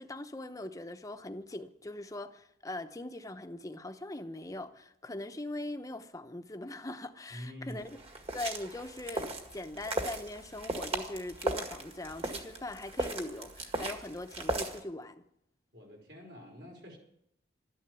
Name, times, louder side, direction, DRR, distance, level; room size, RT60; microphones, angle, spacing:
voice 1, 0.0-8.0 8.3-15.2, left 2 dB, 20° left, 0.8 m, -41 dB
voice 2, 7.3-7.9 15.7-17.0, equal, 65° right, 5.0 m, -46 dB
sound 1, 7.7-14.8, right 1 dB, 30° right, 1.9 m, -37 dB
13.0 x 10.5 x 9.6 m
head